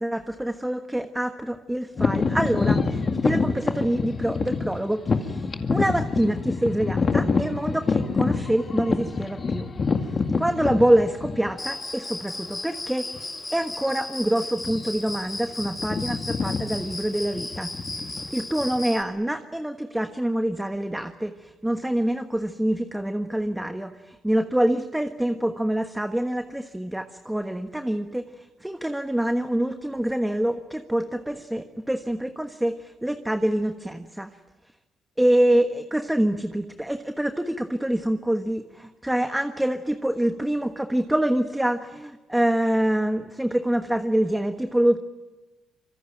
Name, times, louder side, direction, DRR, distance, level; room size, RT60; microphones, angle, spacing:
voice 1, 0.0-9.7 10.4-17.7 18.0-34.3 35.2-45.0, right 1 dB, 5° right, 7 dB, 1.4 m, -26 dB
sound 1, 2.0-11.7 12.4-12.5 13.1-13.4 13.7-13.9 14.5-15.1 15.4-18.8, left 4 dB, 40° left, 2.2 m, -26 dB
Cricket, 11.6-19.0, left 2 dB, 15° left, 2.9 m, -35 dB
26.0 x 23.5 x 9.1 m, 1.2 s
cardioid pair, 90°, 0 cm